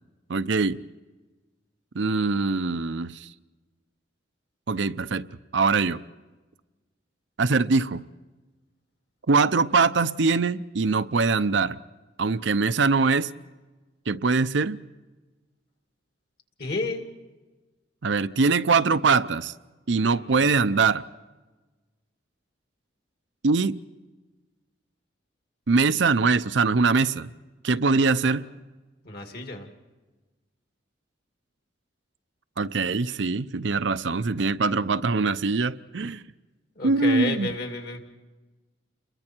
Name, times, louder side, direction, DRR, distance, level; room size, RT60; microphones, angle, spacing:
voice 1, 0.3-0.8 1.9-3.3 4.7-5.2 5.5-6.0 7.4-8.0 9.3-11.8 12.2-13.3 14.1-14.8 18.0-19.5 19.9-21.0 23.4-23.8 25.7-27.3 27.6-28.4 32.6-36.2 36.8-37.5, right 4 dB, 70° right, 0.6 m, -22 dB
voice 2, 16.6-17.0 20.1-20.5 28.2-28.4 29.0-29.7 36.8-38.0, left 2 dB, 55° left, 2.4 m, -31 dB
29.5 x 22.0 x 4.5 m
head